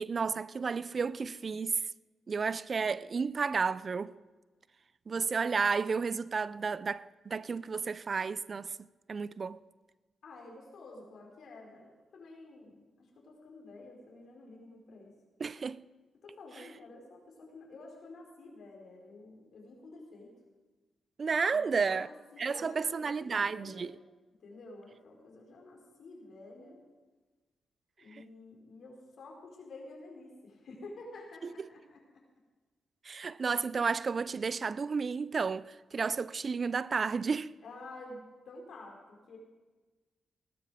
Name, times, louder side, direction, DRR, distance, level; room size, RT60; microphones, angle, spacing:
voice 1, 0.0-1.8 2.3-4.1 5.1-8.8 9.1-9.6 15.4-15.8 21.2-22.1 22.4-23.9 28.1-28.2 31.6-31.7 33.0-37.5, right 5 dB, 45° right, 0.4 m, -32 dB
voice 2, 10.2-15.1 16.2-20.3 21.5-23.9 24.4-26.8 28.0-32.0 37.6-39.4, left 2 dB, 70° left, 4.7 m, -50 dB
18.5 x 12.5 x 5.1 m
cardioid pair, 75°, 0 cm